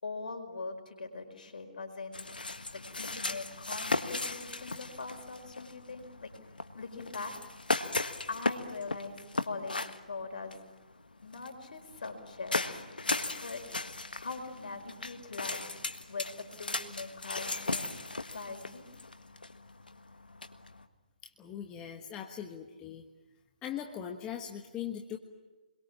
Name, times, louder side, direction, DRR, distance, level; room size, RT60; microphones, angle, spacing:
voice 1, 0.0-2.2 2.7-6.3 6.7-7.3 8.3-10.6 11.2-12.6 13.4-13.8 14.2-15.7 16.1-17.9 18.3-18.9, left 4 dB, 70° left, 6 dB, 4.9 m, -42 dB
sound 1, 2.1-20.9, left 3 dB, 85° left, 1.6 m, -37 dB
voice 2, 21.4-23.0 23.6-25.2, left 9 dB, 15° left, 3 dB, 1.4 m, -40 dB
28.5 x 22.5 x 7.4 m, 1.2 s
figure-of-eight pair, 140°, 5 cm